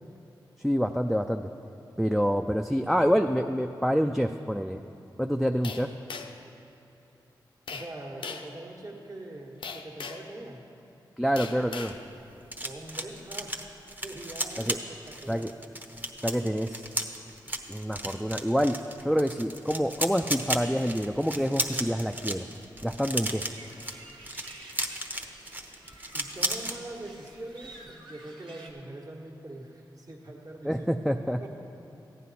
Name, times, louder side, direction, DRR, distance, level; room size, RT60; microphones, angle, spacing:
voice 1, 0.6-1.5 2.0-4.8 5.2-5.9 11.2-11.9 14.6-14.8 15.2-15.5 16.2-16.8 17.7-18.8 19.0-22.5 22.8-23.4 30.6-31.5, equal, ahead, 4 dB, 0.4 m, -27 dB
sound 1, 5.6-6.5 7.7-7.9 8.2-8.5 9.6-10.3 11.4-12.0, left 5 dB, 85° left, 0.7 m, -39 dB
voice 2, 7.7-10.6 12.6-13.6 14.0-15.5 26.1-31.5, right 1 dB, 45° right, 0 dB, 1.5 m, -43 dB
sound 2, 11.6-26.8 27.1-27.4 27.6-27.9, right 1 dB, 20° right, 1.0 m, -35 dB
sound 3, 23.4-28.7, right 2 dB, 70° right, 1.7 m, -51 dB
14.5 x 9.3 x 4.2 m, 2.8 s
cardioid pair, 60°, 8 cm